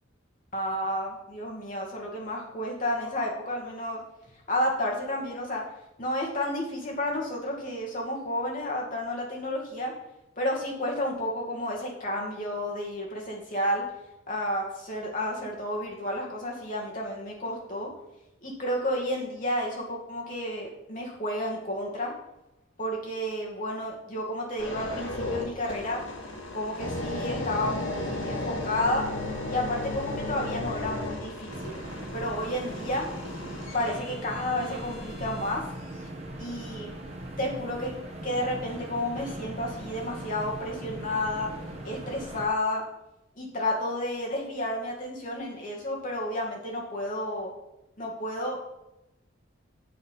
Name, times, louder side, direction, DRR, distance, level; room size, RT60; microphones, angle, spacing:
voice 1, 0.5-4.0 4.5-5.6 6.0-9.9 10.4-13.8 14.3-17.9 18.4-22.1 22.8-26.0 26.5-29.1 29.5-31.8 32.1-33.1 33.7-35.7 36.4-36.9 37.4-37.9 38.2-41.5 41.8-42.8 43.4-47.5 48.0-48.7, left 1 dB, 40° left, -2 dB, 2.4 m, -31 dB
sound 1, 24.6-35.5 36.1-36.3, left 2 dB, 70° left, 2.1 m, -35 dB
sound 2, 31.5-42.5, right 1 dB, 30° right, 1.6 m, -40 dB
8.0 x 7.7 x 5.5 m, 0.89 s
head